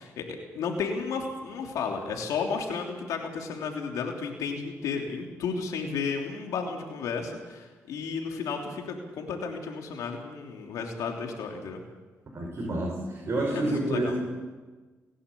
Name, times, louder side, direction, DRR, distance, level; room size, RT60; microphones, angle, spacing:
voice 1, 0.0-11.8 13.5-14.2, left 5 dB, 85° left, 2 dB, 3.1 m, -33 dB
voice 2, 12.3-14.2, right 2 dB, 50° right, -2 dB, 5.9 m, -29 dB
28.0 x 11.5 x 8.4 m, 1.3 s
cardioid pair, 65°, 6 cm